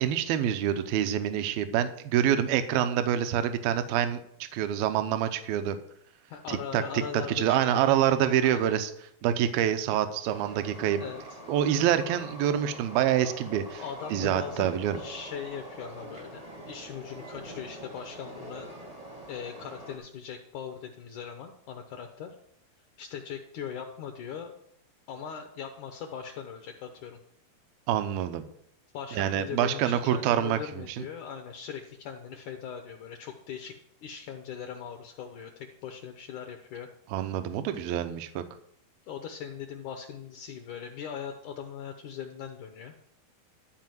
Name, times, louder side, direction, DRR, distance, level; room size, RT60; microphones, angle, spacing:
voice 1, 0.0-4.2 4.5-5.8 6.5-7.0 7.3-8.9 9.2-11.0 11.5-13.8 14.1-15.0 27.9-28.4 29.2-31.0 37.1-38.4, right 10 dB, 80° right, 9 dB, 2.5 m, -26 dB
voice 2, 6.3-7.9 8.4-8.7 11.0-11.2 13.8-18.7 19.3-22.3 23.0-24.5 25.1-27.2 28.9-33.8 34.0-36.9 39.1-42.9, left 7 dB, 70° left, 4 dB, 1.9 m, -40 dB
Train, 10.2-20.0, right 1 dB, 30° right, 0.6 m, -44 dB
13.5 x 4.8 x 7.7 m, 0.70 s
omnidirectional pair, 4.4 m